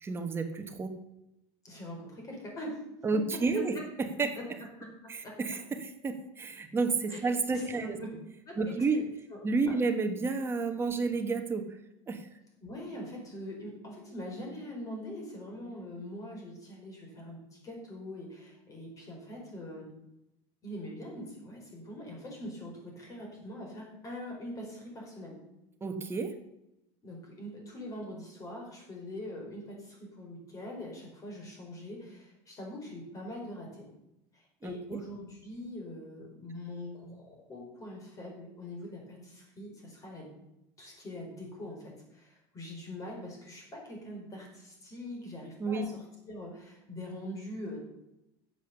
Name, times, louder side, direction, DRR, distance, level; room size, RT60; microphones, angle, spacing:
voice 1, 0.0-1.0 3.0-3.7 4.2-4.3 5.1-8.0 8.6-9.1 9.4-11.8 12.1-12.3 25.8-26.3 34.6-35.0 45.6-45.9, right 4 dB, 20° right, 6 dB, 1.3 m, -31 dB
voice 2, 1.6-2.8 4.3-4.4 4.8-5.4 7.1-7.2 7.5-8.1 8.4-8.8 9.3-9.4 9.7-9.8 12.6-19.9 20.6-25.4 27.0-33.9 34.3-40.3 40.8-47.8, left 1 dB, 25° left, 0 dB, 4.7 m, -43 dB
11.0 x 7.9 x 7.0 m, 0.87 s
cardioid pair, 155°, 13 cm